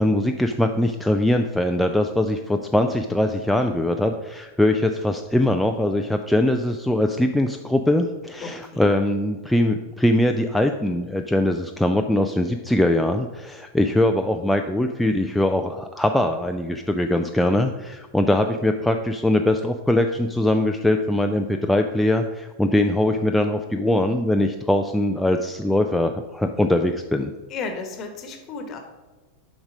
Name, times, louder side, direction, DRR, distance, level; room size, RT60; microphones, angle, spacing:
voice 1, 0.0-27.3, left 1 dB, 5° left, 4 dB, 0.3 m, -22 dB
voice 2, 8.4-8.9 27.5-28.8, left 4 dB, 35° left, 6 dB, 1.2 m, -34 dB
7.1 x 5.0 x 4.9 m, 1.2 s
figure-of-eight pair, 90°, 0 cm